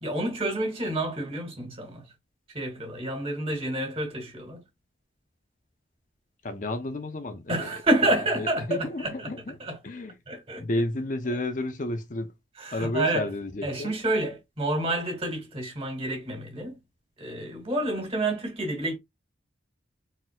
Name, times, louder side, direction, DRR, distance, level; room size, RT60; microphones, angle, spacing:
voice 1, 0.0-2.0 2.5-4.6 7.5-9.3 9.6-9.8 10.3-10.6 12.6-13.3 13.6-16.8 17.2-19.0, right 1 dB, 30° right, 2.0 m, -29 dB
voice 2, 6.4-7.7 8.4-9.6 9.8-10.1 10.6-12.3 12.7-13.9, left 2 dB, 40° left, 0.6 m, -31 dB
4.3 x 3.9 x 2.2 m
head